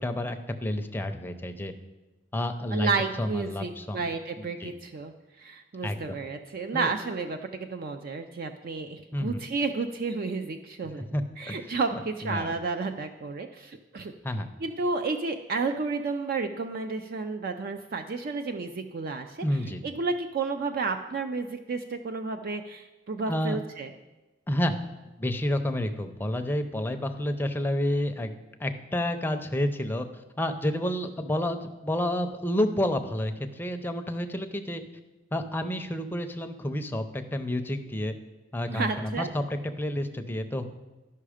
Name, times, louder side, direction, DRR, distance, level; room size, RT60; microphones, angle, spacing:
voice 1, 0.0-1.7 2.3-2.9 3.2-4.0 4.4-4.7 5.8-6.2 6.7-6.9 9.1-9.4 11.1-11.6 11.9-12.5 14.2-14.5 19.4-19.8 23.3-23.6 24.5-24.8 25.2-28.3 28.6-34.8 35.3-38.1 38.5-40.6, left 1 dB, 10° left, 6 dB, 0.5 m, -30 dB
voice 2, 2.7-11.0 11.4-14.1 14.6-19.4 19.8-23.9 38.7-39.3, right 4 dB, 50° right, 6 dB, 0.4 m, -31 dB
12.0 x 5.6 x 5.0 m, 1.1 s
head